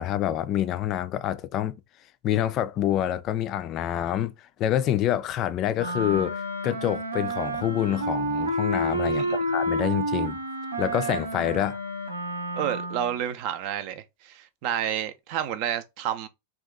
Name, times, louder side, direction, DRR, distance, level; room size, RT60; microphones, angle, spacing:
voice 1, 0.0-1.8 2.2-10.4 10.8-11.8, left 11 dB, 35° left, 0.3 m, -27 dB
Wind instrument woodwind instrument, 5.7-13.2, right 1 dB, 80° right, 0.7 m, -29 dB
voice 2, 12.5-16.3, right 10 dB, 45° right, 0.4 m, -30 dB
2.8 x 2.4 x 3.5 m
figure-of-eight pair, 90°, 0 cm